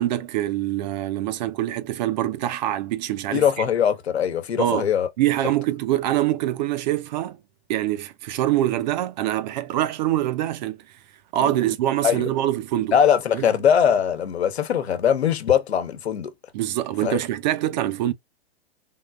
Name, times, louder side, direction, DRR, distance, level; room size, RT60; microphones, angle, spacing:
voice 1, 0.0-3.7 4.6-4.9 5.2-7.4 7.7-10.8 11.3-12.9 13.3-13.5 16.5-18.1, right 13 dB, 45° right, 0.5 m, -24 dB
voice 2, 3.3-5.1 12.0-12.3 12.9-16.3 17.0-17.2, left 8 dB, 90° left, 1.0 m, -21 dB
3.6 x 2.5 x 2.3 m
hypercardioid pair, 135°, 32 cm